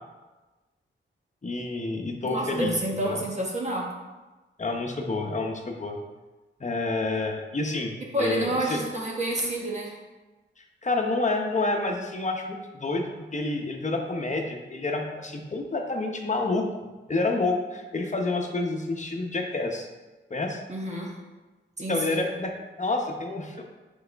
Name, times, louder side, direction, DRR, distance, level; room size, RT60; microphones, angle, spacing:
voice 1, 1.4-2.7 3.0-3.2 4.6-6.0 6.6-8.8 10.8-16.7 17.1-19.9 20.3-20.6 21.9-23.6, left 3 dB, 40° left, 2 dB, 0.9 m, -29 dB
voice 2, 2.2-3.9 8.1-9.9 20.7-21.1 21.8-22.3, right 1 dB, 35° right, -2 dB, 1.4 m, -29 dB
6.3 x 4.8 x 3.5 m, 1.2 s
wide cardioid pair, 90°, 20 cm